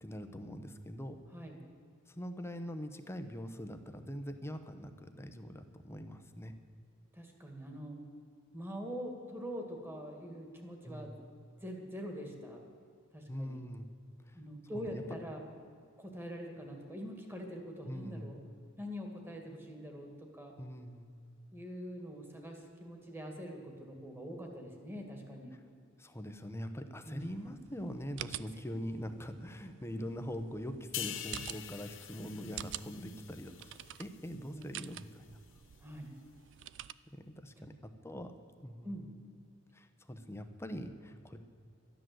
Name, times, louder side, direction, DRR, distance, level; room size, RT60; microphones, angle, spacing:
voice 1, 0.0-1.2 2.1-6.5 10.8-11.2 13.3-13.9 14.3-14.4 14.7-15.0 17.8-18.3 20.6-21.1 26.0-33.7 34.0-35.4 37.1-38.3 38.6-39.0 39.7-41.4, equal, 10° left, 7 dB, 0.9 m, -43 dB
voice 2, 7.1-8.0 8.5-11.2 11.6-12.6 13.1-13.6 14.3-15.4 16.0-18.4 18.8-20.5 21.5-25.6 27.1-27.3 34.4-34.7 35.8-36.1 37.6-37.7 38.8-39.1, equal, 10° right, 2 dB, 2.0 m, -44 dB
sound 1, 27.2-36.9, right 11 dB, 60° right, 0.4 m, -49 dB
sound 2, 30.9-34.5 34.8-35.1, left 11 dB, 65° left, 0.8 m, -45 dB
13.0 x 10.0 x 7.8 m, 2.4 s
head